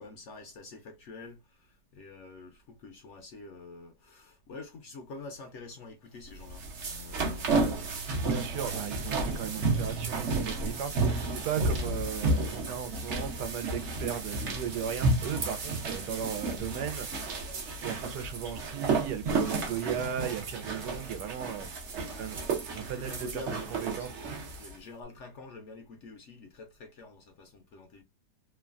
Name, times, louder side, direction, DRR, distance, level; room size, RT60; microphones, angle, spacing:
voice 1, 0.0-7.9 20.7-21.0 22.4-22.6 23.0-28.0, left 3 dB, 65° left, 0.7 m, -47 dB
sound 1, 6.3-24.8, right 3 dB, 55° right, 0.9 m, -32 dB
voice 2, 8.2-17.3 17.8-21.7 22.2-22.4 22.7-24.2, right 9 dB, 90° right, 1.2 m, -36 dB
3.0 x 2.2 x 2.4 m
omnidirectional pair, 1.7 m